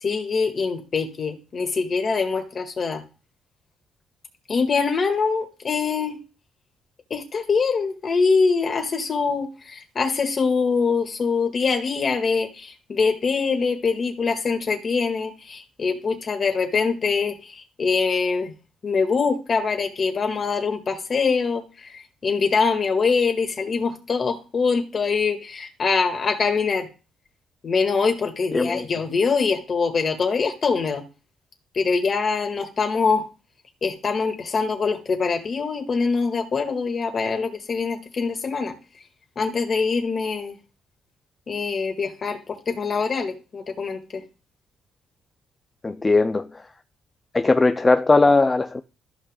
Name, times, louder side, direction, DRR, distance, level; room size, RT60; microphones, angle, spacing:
voice 1, 0.0-3.0 4.5-6.2 7.1-18.5 18.8-26.9 27.6-31.0 31.7-33.3 33.8-38.7 39.4-40.6 41.5-44.2, left 5 dB, 45° left, 2.0 m, -24 dB
voice 2, 28.5-28.9 45.8-46.6 47.3-48.8, left 3 dB, 25° left, 0.5 m, -19 dB
14.0 x 6.0 x 2.4 m
cardioid pair, 90°, 0 cm